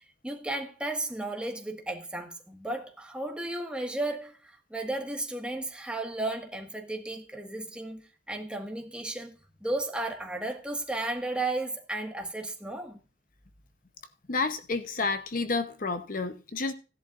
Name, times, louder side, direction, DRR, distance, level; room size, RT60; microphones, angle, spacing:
voice 1, 0.0-9.4 9.6-13.0, right 2 dB, 5° right, 1.6 m, -34 dB
voice 2, 14.3-16.7, left 3 dB, 50° left, 0.8 m, -30 dB
16.5 x 11.0 x 2.5 m
head